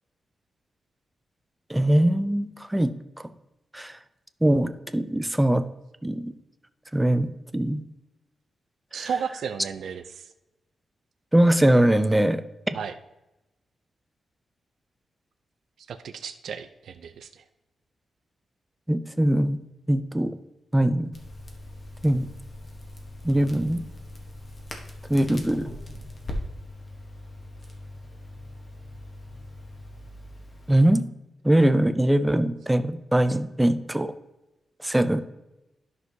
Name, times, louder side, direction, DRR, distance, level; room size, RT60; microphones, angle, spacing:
voice 1, 1.7-3.3 3.7-3.9 4.4-5.6 6.0-6.3 6.9-7.3 7.5-7.8 9.0-9.1 11.3-12.4 18.9-19.6 19.9-20.4 20.7-21.1 22.0-22.3 23.2-23.8 25.1-25.7 30.7-31.0 31.4-34.1 34.8-35.2, right 1 dB, 5° right, 11 dB, 0.4 m, -22 dB
voice 2, 8.9-10.3 12.7-12.9 15.9-17.4, right 7 dB, 75° right, 7 dB, 0.5 m, -33 dB
Crackle, 21.1-30.7, left 1 dB, 30° left, 1.1 m, -40 dB
11.5 x 6.2 x 2.7 m, 0.98 s
wide cardioid pair, 170°, 0 cm